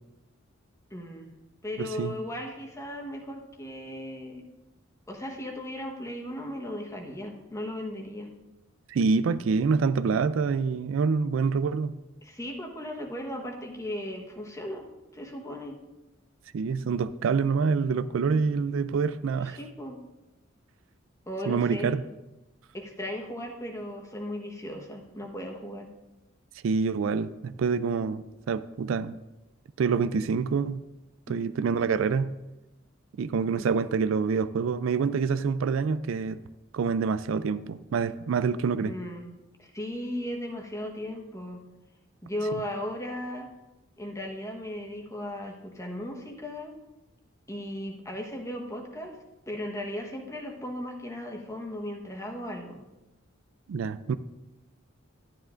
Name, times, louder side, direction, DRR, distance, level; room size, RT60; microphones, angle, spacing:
voice 1, 0.9-1.3 1.6-4.4 5.1-8.3 12.2-14.9 15.1-15.8 19.4-20.0 21.3-22.0 22.7-25.9 31.3-31.5 33.5-33.9 38.8-39.3 39.6-41.6 42.2-43.5 44.0-46.8 47.5-49.1 49.5-52.8, left 1 dB, 15° left, 1.1 m, -36 dB
voice 2, 1.8-2.1 8.9-12.0 16.5-19.6 21.5-22.0 26.6-29.2 29.8-30.8 31.3-32.4 33.2-36.4 36.7-38.9 53.7-54.2, right 5 dB, 75° right, 0.4 m, -26 dB
12.0 x 10.5 x 2.5 m
head